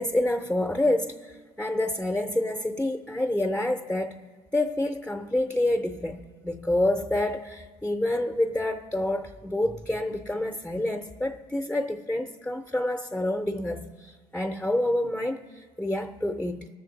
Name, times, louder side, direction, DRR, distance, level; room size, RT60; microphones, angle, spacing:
voice 1, 0.0-4.2 4.5-16.7, left 1 dB, 5° left, 0.5 m, -28 dB
20.5 x 7.1 x 4.0 m
cardioid pair, 110°, 17 cm